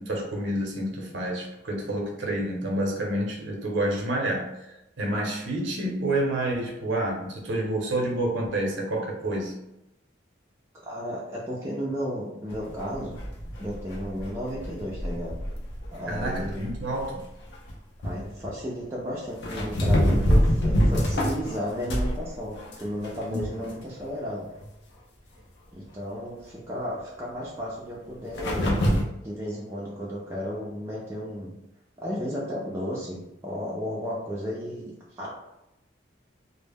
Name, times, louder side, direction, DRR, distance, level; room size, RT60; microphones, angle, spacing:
voice 1, 0.0-4.5 5.0-9.5 16.1-17.2 23.3-23.4, right 1 dB, 75° right, -1 dB, 0.6 m, -28 dB
voice 2, 10.8-13.2 13.6-15.4 15.9-16.7 18.0-24.5 25.7-28.8 29.2-31.6 32.0-35.3, equal, 15° right, -6 dB, 0.3 m, -33 dB
sound 1, 12.5-17.0 17.5-17.7 18.0-18.6 19.4-22.2 22.6-23.7 24.0-24.1 24.6-24.7 28.4-29.0, equal, 60° left, 0.5 m, -26 dB
2.0 x 2.0 x 3.3 m, 0.89 s
head